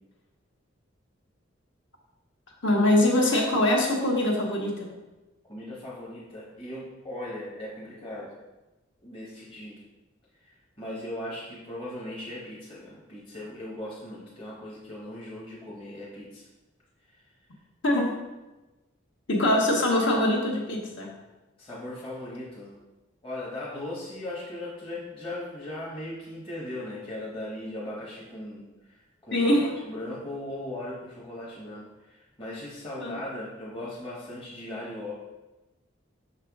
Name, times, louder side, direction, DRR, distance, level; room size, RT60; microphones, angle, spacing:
voice 1, 2.6-4.9 17.8-18.1 19.3-21.1 29.3-29.8 33.0-33.2, left 1 dB, 65° left, -1 dB, 1.4 m, -23 dB
voice 2, 5.5-8.4 9.0-9.8 10.4-16.5 21.6-22.7 23.2-35.1, left 1 dB, 25° left, -6 dB, 1.0 m, -38 dB
6.3 x 5.6 x 3.6 m, 1.1 s
head